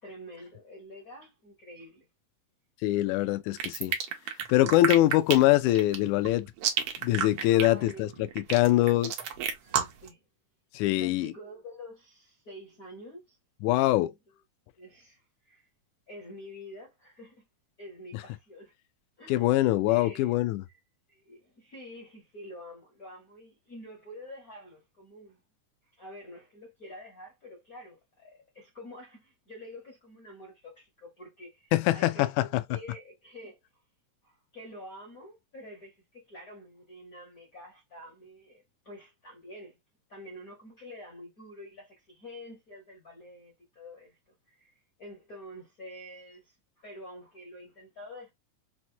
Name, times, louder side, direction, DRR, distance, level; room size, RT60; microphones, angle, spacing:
voice 1, 0.0-2.1 7.4-8.1 9.2-9.3 9.6-10.2 11.0-13.4 14.1-14.2 14.8-15.7 16.1-17.4 17.8-18.7 19.2-19.5 19.9-20.4 20.7-20.8 21.1-25.4 25.9-33.6 34.2-39.8 40.1-44.2 44.5-48.3, left 1 dB, 60° left, 0.9 m, -47 dB
voice 2, 2.8-3.9 4.5-6.5 7.0-9.1 10.7-11.3 13.6-14.1 19.3-20.6 31.7-32.5, left 15 dB, 80° left, 1.9 m, -23 dB
sound 1, 3.6-10.1, right 8 dB, 75° right, 1.4 m, -30 dB
5.9 x 2.1 x 2.7 m
omnidirectional pair, 3.6 m